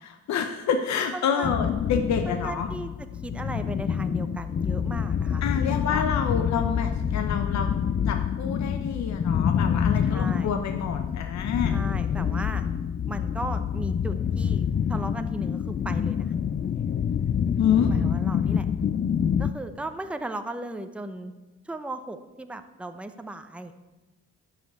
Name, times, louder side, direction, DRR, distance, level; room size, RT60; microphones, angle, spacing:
voice 1, 0.0-2.7 5.4-7.7 8.1-11.7 17.6-17.9, left 7 dB, 65° left, 5 dB, 0.9 m, -28 dB
voice 2, 1.1-1.5 2.3-2.9 3.2-6.0 10.0-10.5 11.7-12.7 13.1-16.3 17.9-18.7 19.4-21.3 21.6-23.7, right 2 dB, 5° right, 8 dB, 0.8 m, -36 dB
sound 1, 1.4-19.5, left 8 dB, 30° left, 0.4 m, -27 dB
12.0 x 5.1 x 8.3 m, 1.1 s
cardioid pair, 90°, 30 cm